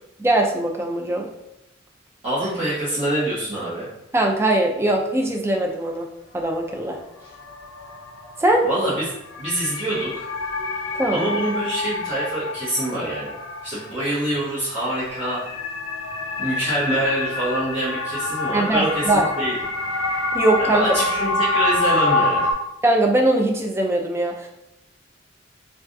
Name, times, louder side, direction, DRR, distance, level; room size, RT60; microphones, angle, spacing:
voice 1, 0.2-1.3 4.1-6.1 6.3-7.0 8.4-8.6 11.0-11.3 18.5-19.2 20.3-20.8 22.8-24.5, right 1 dB, 15° right, 1 dB, 0.3 m, -21 dB
voice 2, 2.2-3.9 8.6-9.1 9.4-10.3 11.1-13.3 13.6-15.4 16.4-19.6 20.6-22.5, right 1 dB, 35° right, -12 dB, 1.2 m, -25 dB
sound 1, 3.5-3.6 6.7-6.8 7.2-22.5, left 2 dB, 80° left, 0.5 m, -27 dB
3.3 x 2.3 x 2.6 m, 0.85 s
head